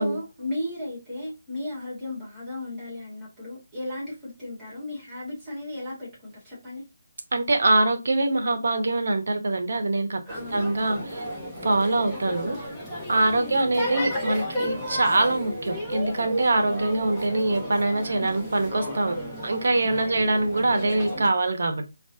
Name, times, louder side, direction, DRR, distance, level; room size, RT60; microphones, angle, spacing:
voice 1, 0.0-6.8 10.3-10.8 13.1-13.6 16.6-17.0 20.0-20.4, left 1 dB, 15° right, 1.9 m, -36 dB
voice 2, 7.3-10.2 10.5-11.2 11.6-12.6 13.1-19.2 19.4-21.9, right 2 dB, 60° right, 0.8 m, -24 dB
sound 1, 10.3-21.3, equal, ahead, 0.9 m, -33 dB
4.5 x 2.4 x 2.7 m
figure-of-eight pair, 150°, 0 cm